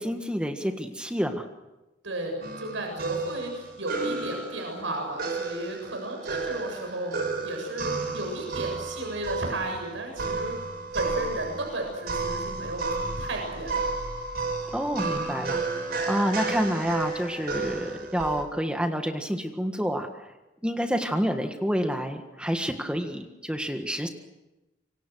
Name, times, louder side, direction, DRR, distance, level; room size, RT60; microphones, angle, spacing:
voice 1, 0.0-1.5 14.7-15.6 16.1-20.1 20.6-24.1, equal, 5° right, 5 dB, 1.6 m, -28 dB
voice 2, 2.0-10.6 10.9-12.8 13.2-13.9, right 1 dB, 80° right, 2 dB, 7.3 m, -34 dB
sound 1, 2.4-18.4, right 3 dB, 55° right, 5.0 m, -32 dB
27.5 x 25.0 x 6.4 m, 0.99 s
head